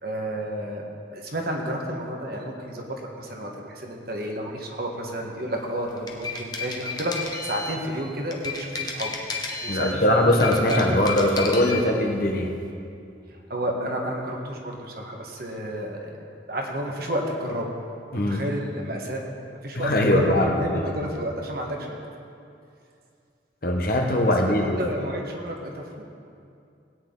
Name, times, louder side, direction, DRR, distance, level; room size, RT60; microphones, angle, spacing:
voice 1, 0.0-0.8 1.1-7.1 7.4-11.0 13.3-16.1 16.5-17.7 18.1-19.2 19.5-22.0 24.5-26.0, equal, 50° right, 0 dB, 1.5 m, -31 dB
sound 1, 5.9-7.8 8.3-10.0 10.3-11.8, left 4 dB, 20° left, 1.0 m, -32 dB
voice 2, 9.7-12.6 18.1-18.5 19.7-20.8 23.6-24.8, left 1 dB, 50° left, 1 dB, 1.2 m, -21 dB
17.0 x 9.3 x 3.9 m, 2.5 s
head